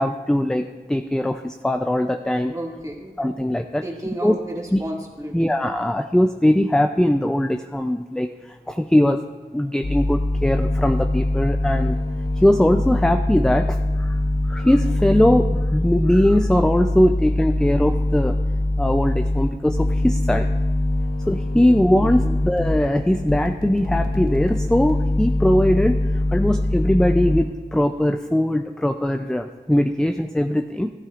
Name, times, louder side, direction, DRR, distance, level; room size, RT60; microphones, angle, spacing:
voice 1, 0.0-2.5 3.2-3.8 4.2-4.4 4.7-4.8 5.3-8.3 8.7-9.2 9.5-12.0 12.4-14.2 14.5-18.4 18.8-20.5 21.3-26.0 26.3-30.9, left 1 dB, 5° left, 7 dB, 0.4 m, -20 dB
voice 2, 2.5-3.4 3.8-5.6 21.6-21.7 22.0-22.4, right 1 dB, 20° right, -2 dB, 2.0 m, -33 dB
sound 1, 9.8-27.4, left 1 dB, 65° left, 1.2 m, -23 dB
14.0 x 12.0 x 2.5 m, 1.3 s
wide cardioid pair, 60°, 17 cm